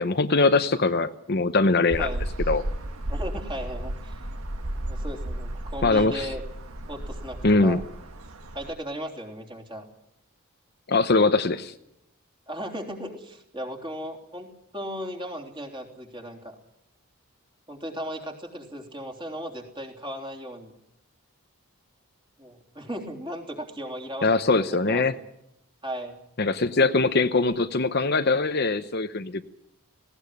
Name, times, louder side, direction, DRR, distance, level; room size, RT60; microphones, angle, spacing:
voice 1, 0.0-2.1 2.5-2.6 5.8-6.3 7.4-7.8 10.9-11.7 24.2-25.1 26.4-29.4, left 3 dB, 45° left, 9 dB, 0.8 m, -22 dB
sound 1, 1.9-8.7, right 1 dB, 80° right, 1.6 m, -33 dB
voice 2, 3.1-4.2 4.9-6.4 6.9-7.8 8.5-9.9 12.5-16.6 17.7-20.7 22.4-24.3 24.9-25.2 25.8-26.2, equal, 20° right, 2 dB, 3.4 m, -36 dB
18.5 x 17.5 x 9.9 m, 0.81 s
head